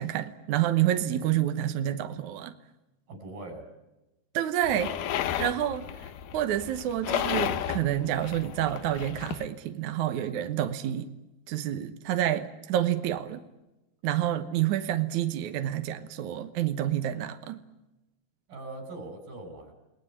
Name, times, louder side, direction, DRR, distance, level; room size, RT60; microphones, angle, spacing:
voice 1, 0.0-2.5 4.3-4.9 5.4-5.9 6.3-11.1 11.5-13.4 14.0-17.6, right 12 dB, 65° right, 8 dB, 2.3 m, -28 dB
voice 2, 3.1-3.7 18.5-19.7, right 2 dB, 90° right, 8 dB, 7.1 m, -41 dB
sound 1, 4.6-9.5, left 10 dB, 70° left, 2.6 m, -33 dB
29.0 x 19.5 x 9.9 m, 1.0 s
omnidirectional pair, 4.0 m